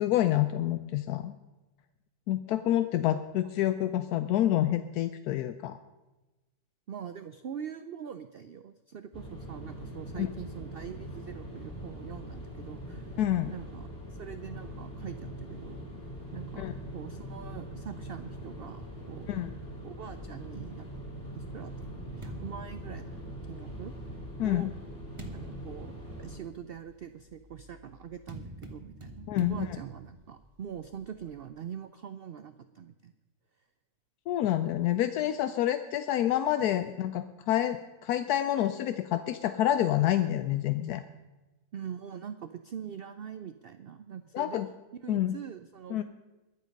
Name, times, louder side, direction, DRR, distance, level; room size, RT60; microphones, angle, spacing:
voice 1, 0.0-1.3 2.3-5.8 10.2-10.3 13.2-13.5 16.6-16.7 19.3-19.5 24.4-24.7 29.3-29.6 34.3-41.0 44.3-44.7 45.1-45.3 45.9-46.0, left 12 dB, 85° left, 10 dB, 1.1 m, -28 dB
voice 2, 6.9-13.2 13.5-15.8 16.3-19.5 19.8-20.9 21.3-23.1 23.5-23.9 24.4-24.7 25.3-25.9 26.2-33.1 41.7-44.6 45.0-46.0, right 8 dB, 65° right, 10 dB, 0.5 m, -43 dB
sound 1, 9.1-26.4, right 1 dB, 35° left, 3.1 m, -42 dB
sound 2, 21.0-23.7 24.4-31.5, right 1 dB, 20° right, 1.2 m, -48 dB
22.0 x 7.4 x 5.2 m, 1.1 s
omnidirectional pair, 1.6 m